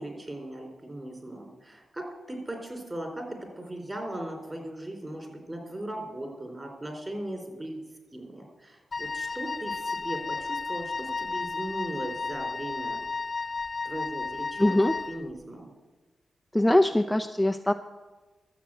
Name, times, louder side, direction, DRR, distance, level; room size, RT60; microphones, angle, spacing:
voice 1, 0.0-7.8 8.1-13.0 13.8-15.7, right 1 dB, 25° right, 3 dB, 4.6 m, -38 dB
Wind instrument woodwind instrument, 8.9-15.3, left 4 dB, 45° left, 0.3 m, -33 dB
voice 2, 14.6-14.9 16.5-17.7, left 1 dB, 10° left, 6 dB, 0.6 m, -22 dB
13.0 x 7.6 x 8.0 m, 1.2 s
cardioid pair, 50°, 0 cm